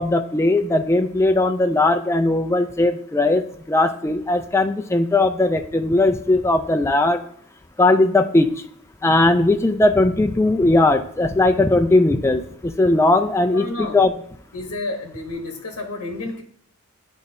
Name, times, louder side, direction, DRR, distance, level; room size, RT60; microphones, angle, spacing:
voice 1, 0.0-3.4 3.7-7.2 7.8-8.5 9.0-14.1, left 2 dB, 10° left, 6 dB, 0.3 m, -18 dB
voice 2, 13.4-14.0 14.5-16.4, left 2 dB, 85° left, 3 dB, 0.9 m, -30 dB
10.5 x 4.1 x 2.6 m, 0.65 s
head